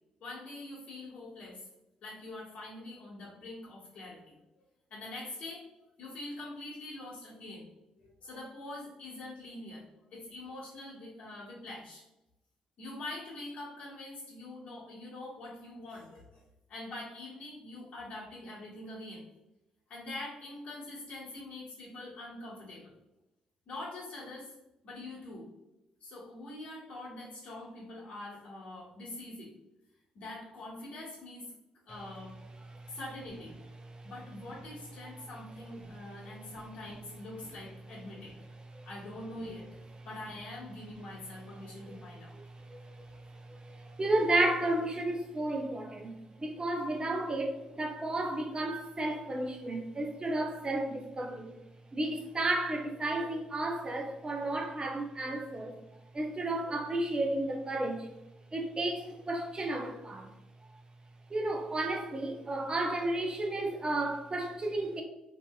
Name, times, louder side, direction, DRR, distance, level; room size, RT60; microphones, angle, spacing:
voice 1, 0.2-1.6 2.0-4.6 4.9-5.6 6.0-7.7 8.0-12.0 12.8-16.3 16.7-19.2 19.9-22.9 23.7-24.5 24.8-25.5 26.0-29.5 30.1-31.4 31.9-32.3 32.9-33.5 34.0-38.4 38.8-39.7 40.0-42.3, left 2 dB, 55° left, -7 dB, 1.1 m, -44 dB
voice 2, 42.6-43.0 43.3-51.5 51.9-55.7 56.1-58.1 58.5-60.3 61.3-65.0, right 2 dB, 30° right, 2 dB, 0.6 m, -32 dB
2.8 x 2.6 x 2.2 m, 0.94 s
hypercardioid pair, 45°, 3 cm